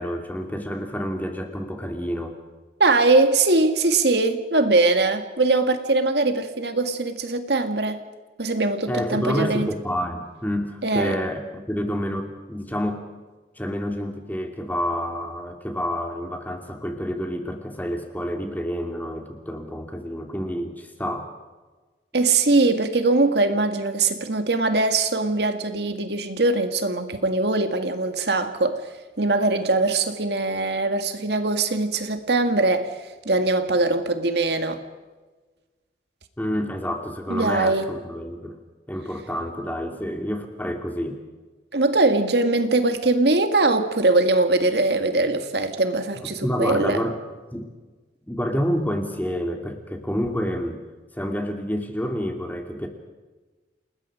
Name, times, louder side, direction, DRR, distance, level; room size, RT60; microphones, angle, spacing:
voice 1, 0.0-2.4 8.9-13.0 13.6-21.3 36.4-38.6 38.9-41.2 46.4-47.2 47.5-47.7 48.3-50.8 51.1-52.9, equal, 10° left, 4 dB, 2.7 m, -28 dB
voice 2, 2.8-8.0 8.4-9.7 10.8-11.2 22.1-28.8 29.2-32.9 33.3-34.8 37.3-37.9 41.7-47.0, right 2 dB, 65° right, 7 dB, 2.0 m, -21 dB
29.5 x 20.5 x 5.0 m, 1.3 s
head